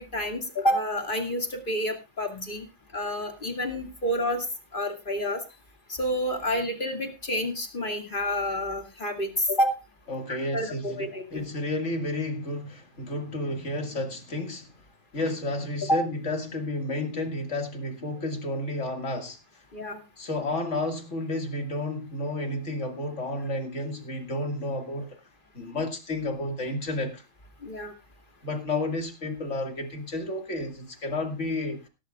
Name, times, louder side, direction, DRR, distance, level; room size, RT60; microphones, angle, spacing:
voice 1, 0.0-2.6 2.9-4.5 4.7-5.4 6.0-9.8 10.3-11.4 15.9-16.0 19.7-20.0 27.6-27.9, equal, 40° left, 2.5 m, -29 dB
voice 2, 10.1-14.7 15.1-19.4 20.2-25.2 25.5-27.2 28.4-31.8, left 2 dB, 65° left, 2.5 m, -31 dB
16.0 x 14.0 x 2.4 m
omnidirectional pair, 1.4 m